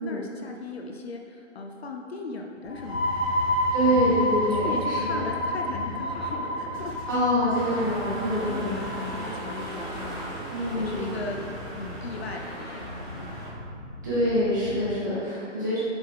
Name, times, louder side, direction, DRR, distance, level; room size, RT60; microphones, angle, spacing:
voice 1, 0.0-3.1 3.9-6.9 7.4-7.6 8.5-8.7 9.1-10.3 10.7-11.4 11.7-13.4, left 3 dB, 55° left, 1 dB, 0.4 m, -38 dB
sound 1, 2.6-10.1, left 1 dB, 85° left, 1.3 m, -29 dB
voice 2, 3.7-5.2 7.1-8.7 10.5-11.1 14.0-15.8, equal, 15° right, -10 dB, 0.6 m, -25 dB
sound 2, 4.8-14.9, left 1 dB, 30° left, 0.9 m, -42 dB
sound 3, 7.5-13.5, equal, 40° right, 1.0 m, -37 dB
4.7 x 3.6 x 2.4 m, 2.4 s
hypercardioid pair, 160°, 38 cm